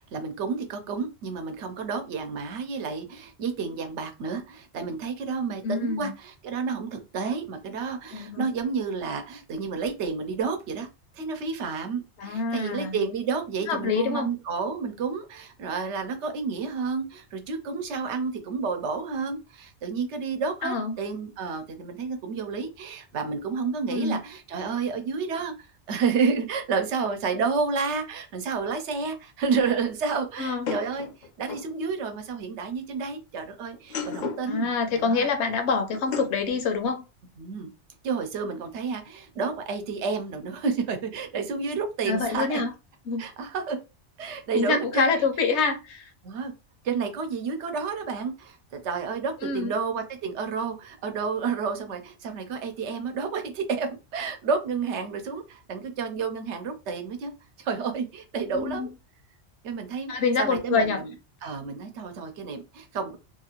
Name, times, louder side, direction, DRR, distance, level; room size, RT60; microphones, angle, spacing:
voice 1, 0.1-10.9 11.1-35.3 37.4-37.7 38.0-42.6 43.2-43.8 44.2-45.1 46.2-46.5 46.8-57.3 57.6-58.9 59.6-60.1 60.4-61.1 61.4-63.2, right 5 dB, 80° right, 0.9 m, -30 dB
voice 2, 5.6-6.1 8.1-8.5 12.2-13.0 13.7-14.3 20.6-21.0 23.9-24.2 30.4-30.6 34.5-37.0 42.0-42.7 43.1-43.2 44.5-46.1 49.4-49.7 58.5-58.9 60.1-61.0, left 4 dB, 75° left, 0.9 m, -26 dB
sound 1, 28.5-28.6 30.7-31.7 33.7-34.5 35.9-36.5, left 5 dB, 55° left, 0.6 m, -34 dB
2.8 x 2.4 x 2.8 m
omnidirectional pair, 1.2 m